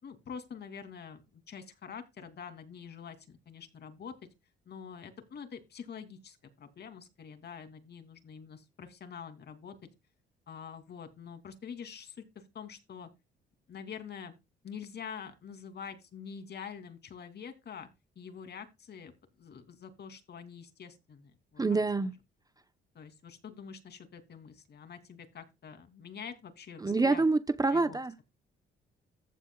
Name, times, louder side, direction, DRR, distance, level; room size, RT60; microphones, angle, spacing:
voice 1, 0.0-4.2 4.7-9.7 10.5-13.1 13.7-14.3 14.6-17.9 18.2-19.1 19.4-21.8 22.9-27.2 27.7-28.0, left 7 dB, 55° left, 2.8 m, -46 dB
voice 2, 21.6-22.1 26.8-28.1, right 3 dB, 20° right, 0.8 m, -27 dB
14.5 x 8.2 x 2.3 m
cardioid pair, 90°, 20 cm